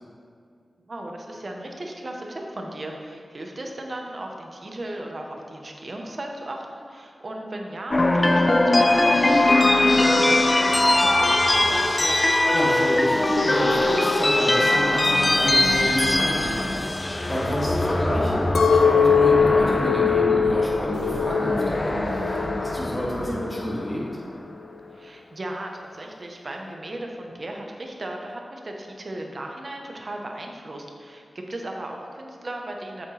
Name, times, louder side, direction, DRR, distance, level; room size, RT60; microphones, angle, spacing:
voice 1, 0.9-12.2 18.1-18.4 23.2-23.4 24.9-33.1, right 1 dB, 45° right, 1 dB, 1.1 m, -36 dB
sound 1, 7.9-24.1, left 2 dB, 30° left, 0.5 m, -21 dB
voice 2, 12.5-24.0, equal, 15° left, -5 dB, 2.2 m, -29 dB
sound 2, 15.4-16.7 17.4-23.4, equal, 70° right, 1.6 m, -40 dB
Chink clink, 18.5-22.8 23.3-23.9, left 6 dB, 80° left, 0.5 m, -21 dB
8.6 x 7.5 x 3.4 m, 2.3 s
wide cardioid pair, 90°, 0 cm